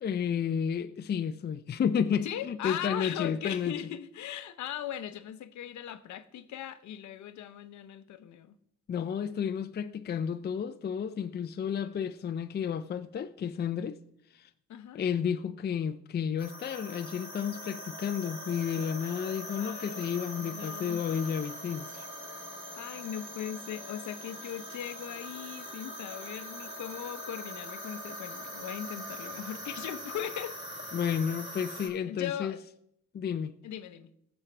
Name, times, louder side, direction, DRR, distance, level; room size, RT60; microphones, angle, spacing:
voice 1, 0.0-3.8 8.9-14.0 14.3-14.5 14.9-22.1 30.9-32.5 33.1-33.5, left 7 dB, 35° left, 0.5 m, -32 dB
voice 2, 2.2-8.6 14.7-15.0 19.5-21.0 22.7-30.9 32.1-32.6 33.6-34.1, left 10 dB, 70° left, 0.8 m, -39 dB
sound 1, 16.4-31.9, equal, 20° right, 3.4 m, -42 dB
16.0 x 7.2 x 3.3 m
cardioid pair, 90°, 30 cm